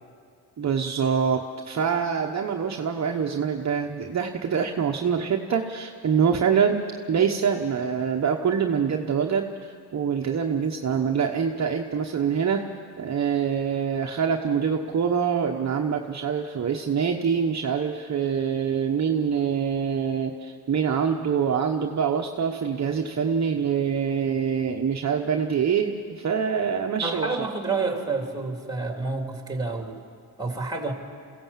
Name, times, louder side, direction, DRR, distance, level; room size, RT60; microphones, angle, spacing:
voice 1, 0.6-12.7 13.0-27.3, right 7 dB, 40° right, 3 dB, 1.1 m, -25 dB
voice 2, 27.0-30.0 30.4-30.9, right 3 dB, 10° right, 2 dB, 3.3 m, -29 dB
23.5 x 16.5 x 7.4 m, 2.3 s
cardioid pair, 80°, 40 cm